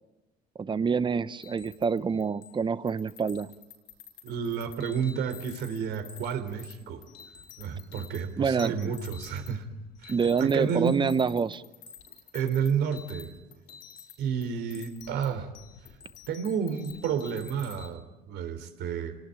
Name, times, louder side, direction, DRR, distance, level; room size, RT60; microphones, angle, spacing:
voice 1, 0.6-3.5 8.4-8.9 10.1-11.6, right 5 dB, 30° right, 15 dB, 0.9 m, -27 dB
sound 1, 1.4-2.6 2.9-17.9, left 7 dB, 80° left, 5.2 m, -49 dB
voice 2, 4.2-7.0 7.6-9.7 10.0-11.1 12.3-13.3 14.2-15.5 16.3-19.2, right 7 dB, 80° right, 9 dB, 3.4 m, -31 dB
28.5 x 18.5 x 9.1 m, 1.1 s
cardioid pair, 110°, 17 cm